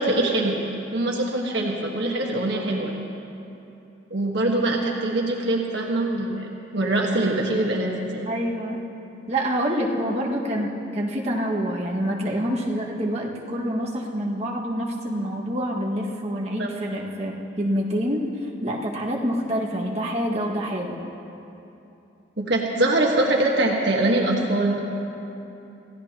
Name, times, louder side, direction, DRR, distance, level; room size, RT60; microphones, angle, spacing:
voice 1, 0.0-2.9 4.1-8.3 16.6-16.7 22.4-24.8, right 2 dB, 65° right, -1 dB, 1.4 m, -23 dB
voice 2, 8.3-8.8 9.3-21.0, equal, 35° right, -3 dB, 1.9 m, -27 dB
27.0 x 16.0 x 3.0 m, 2.9 s
head